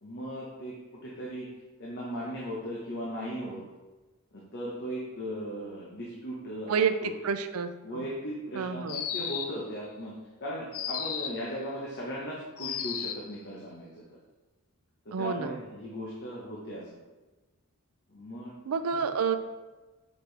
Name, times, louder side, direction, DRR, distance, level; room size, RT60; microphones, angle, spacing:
voice 1, 0.0-0.7 1.0-1.5 1.8-3.6 4.3-7.1 7.8-10.1 10.4-14.0 15.0-17.0 18.1-18.5 18.9-19.0, equal, 55° left, -4 dB, 1.0 m, -37 dB
voice 2, 6.7-8.1 8.5-9.0 15.1-15.6 18.7-19.4, right 6 dB, 90° right, 10 dB, 0.4 m, -29 dB
sound 1, 8.9-9.7 10.7-11.5 12.6-13.3, left 8 dB, 70° left, 0.5 m, -34 dB
6.0 x 5.1 x 3.3 m, 1.2 s
head